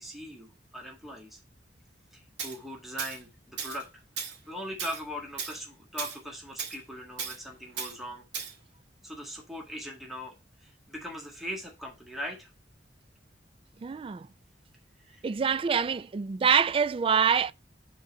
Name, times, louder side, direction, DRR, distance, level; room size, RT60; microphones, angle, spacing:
voice 1, 0.0-1.4 2.1-8.2 9.0-10.3 10.6-12.5 15.1-15.3, equal, ahead, 1.7 m, -40 dB
Tools, 2.4-2.6 3.0-3.2 3.6-3.8 4.2-4.4 4.8-5.0 5.4-5.6 6.0-6.2 6.6-6.8 7.2-7.4 7.8-7.9 8.3-8.5, right 6 dB, 80° right, 1.6 m, -36 dB
voice 2, 13.8-14.3 15.2-17.5, right 6 dB, 30° right, 0.3 m, -25 dB
6.4 x 3.9 x 6.1 m
head